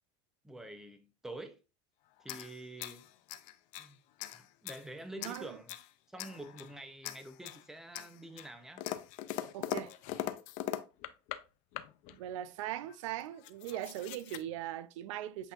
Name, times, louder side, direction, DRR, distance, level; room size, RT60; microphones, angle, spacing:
voice 1, 0.4-1.6 2.2-3.1 3.8-4.0 4.3-5.7 6.1-8.8, right 1 dB, 5° right, 0.5 m, -47 dB
sound 1, 2.2-3.9 4.2-4.8 5.2-5.9 6.2-6.7 7.0-7.6 7.9-11.4 11.7-12.2 12.9-13.0 13.2-14.4, left 13 dB, 50° left, 0.5 m, -41 dB
voice 2, 5.2-5.6 9.5-9.9 12.1-15.5, right 12 dB, 80° right, 0.5 m, -40 dB
7.9 x 2.6 x 2.3 m
supercardioid pair, 130°, 16 cm